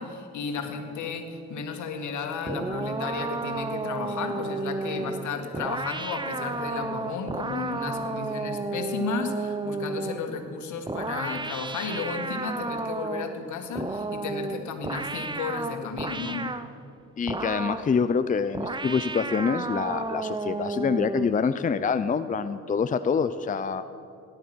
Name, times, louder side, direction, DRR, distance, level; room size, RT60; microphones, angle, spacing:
voice 1, 0.0-16.5, left 5 dB, 75° left, 5 dB, 2.1 m, -33 dB
sound 1, 2.5-10.3 10.9-13.4 13.7-16.7 17.3-17.9 18.5-21.4, right 3 dB, 15° right, 0.7 m, -32 dB
voice 2, 17.2-23.8, left 5 dB, 25° left, 11 dB, 0.6 m, -26 dB
17.5 x 12.0 x 6.3 m, 2.5 s
cardioid pair, 90°, 30 cm